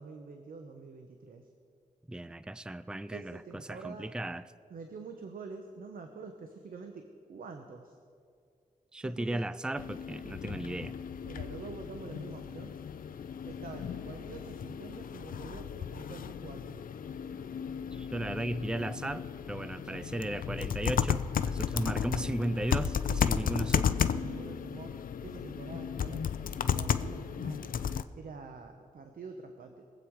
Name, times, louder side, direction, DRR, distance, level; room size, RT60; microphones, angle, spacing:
voice 1, 0.0-1.5 3.1-4.2 4.7-8.0 9.0-9.4 11.3-12.8 13.5-16.8 23.1-23.3 24.2-24.9 25.2-27.7 28.1-29.9, right 4 dB, 80° right, 5 dB, 0.9 m, -46 dB
voice 2, 2.1-3.4 3.7-4.5 8.9-11.0 17.9-24.0, right 1 dB, 5° right, 15 dB, 0.4 m, -35 dB
sound 1, 9.8-28.0, left 8 dB, 80° left, 0.5 m, -34 dB
23.0 x 8.3 x 4.7 m, 2.3 s
wide cardioid pair, 105°, 14 cm